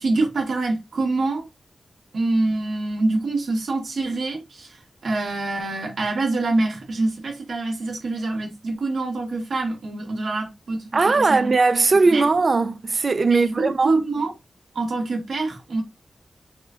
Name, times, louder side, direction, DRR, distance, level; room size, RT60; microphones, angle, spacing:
voice 1, 0.0-1.5 2.1-11.5 12.1-12.2 13.3-14.3 14.7-15.8, right 2 dB, 75° right, 1.1 m, -25 dB
voice 2, 10.9-14.0, right 3 dB, 45° right, 0.4 m, -19 dB
3.5 x 2.3 x 3.5 m
wide cardioid pair, 110°, 0 cm